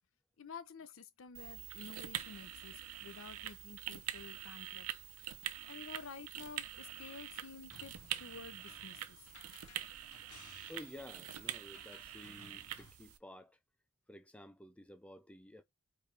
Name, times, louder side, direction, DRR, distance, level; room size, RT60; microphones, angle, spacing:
voice 1, 0.4-4.9 5.7-7.9 8.2-9.3, left 5 dB, 60° left, 0.6 m, -51 dB
sound 1, 1.3-13.2, right 11 dB, 80° right, 0.6 m, -45 dB
sound 2, 7.7-12.9, left 5 dB, 90° left, 1.0 m, -60 dB
voice 2, 10.7-13.6 14.1-15.6, left 1 dB, 5° left, 0.4 m, -53 dB
4.8 x 3.1 x 3.3 m
head